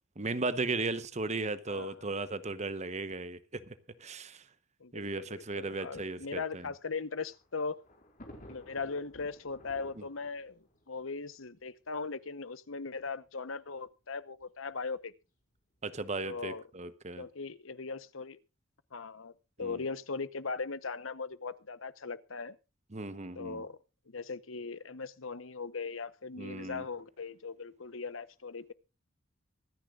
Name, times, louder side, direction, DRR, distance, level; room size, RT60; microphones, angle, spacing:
voice 1, 0.2-3.4 4.0-4.4 4.9-6.6 15.8-17.2 19.6-19.8 22.9-23.6 26.4-26.8, right 3 dB, 35° right, 1.0 m, -36 dB
voice 2, 1.7-2.0 4.8-7.8 8.5-15.1 16.2-16.7 17.2-18.4 18.9-19.3 19.6-22.6 23.3-23.8 24.1-28.7, left 4 dB, 85° left, 1.0 m, -39 dB
Thunder, 6.8-12.1 12.9-13.0 13.2-13.3 14.4-14.7, left 1 dB, 45° left, 4.7 m, -55 dB
24.5 x 10.0 x 2.5 m
head